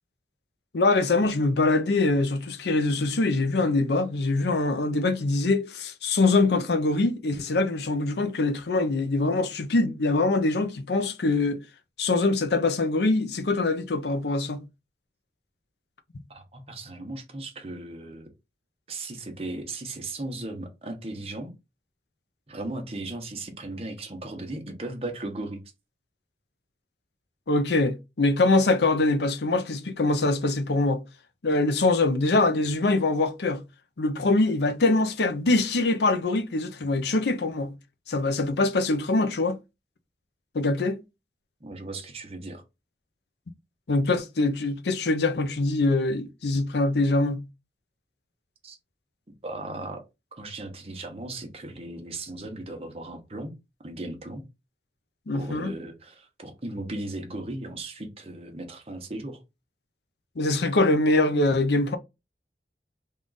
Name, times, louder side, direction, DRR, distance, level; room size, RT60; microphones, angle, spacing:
voice 1, 0.7-11.6 12.0-14.6 27.5-31.0 31.4-33.6 34.0-37.7 38.1-39.6 40.5-41.0 43.9-47.4 55.3-55.7 60.4-62.0, left 2 dB, 75° left, 0.6 m, -23 dB
voice 2, 16.3-18.3 18.9-21.5 22.5-25.6 41.6-42.6 48.6-48.8 49.4-50.0 50.3-53.5 53.8-54.4 55.3-59.4, right 2 dB, 35° right, 0.8 m, -37 dB
3.6 x 2.4 x 3.8 m
head